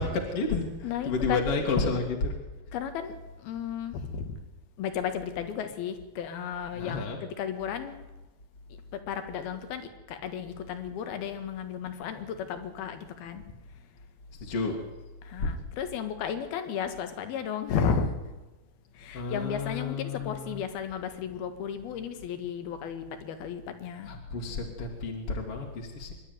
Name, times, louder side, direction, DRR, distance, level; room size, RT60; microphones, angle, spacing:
voice 1, 0.0-0.7 1.0-2.5 6.8-7.2 14.3-14.8 15.4-15.5 19.1-20.6 24.1-26.1, left 3 dB, 45° left, 0 dB, 2.8 m, -30 dB
voice 2, 0.8-1.5 2.7-4.4 4.8-7.9 8.7-13.9 15.2-18.2 18.9-24.1, left 7 dB, 80° left, 9 dB, 3.6 m, -34 dB
24.5 x 12.0 x 9.5 m, 1.1 s
omnidirectional pair, 4.4 m